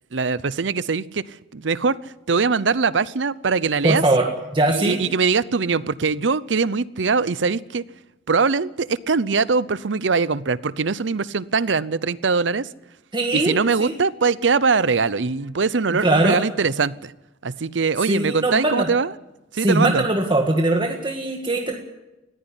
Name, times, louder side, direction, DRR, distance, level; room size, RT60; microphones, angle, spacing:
voice 1, 0.1-4.0 4.7-7.8 8.3-12.7 13.3-17.1 17.4-19.1 19.5-20.0, right 4 dB, 85° right, 18 dB, 0.7 m, -22 dB
voice 2, 3.8-5.0 13.1-13.9 16.0-16.4 18.1-18.9 19.6-21.8, right 2 dB, 25° right, 2 dB, 1.7 m, -21 dB
20.5 x 14.5 x 9.9 m, 0.98 s
head